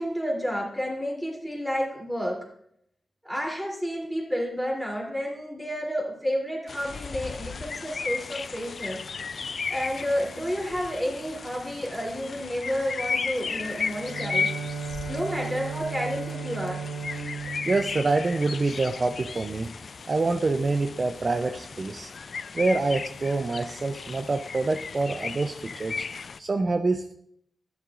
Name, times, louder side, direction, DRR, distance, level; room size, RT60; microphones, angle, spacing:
voice 1, 0.0-2.5 3.2-9.1 9.7-14.5 15.1-16.8, equal, 5° right, -2 dB, 3.0 m, -30 dB
sound 1, 6.7-26.4, left 5 dB, 60° left, 0.3 m, -35 dB
Bowed string instrument, 13.4-18.9, right 5 dB, 90° right, 3.3 m, -36 dB
voice 2, 17.7-19.7 20.1-22.1 22.5-26.1 26.4-27.1, right 3 dB, 40° right, 6 dB, 0.5 m, -26 dB
11.5 x 10.5 x 2.5 m, 0.70 s
wide cardioid pair, 85°, 0 cm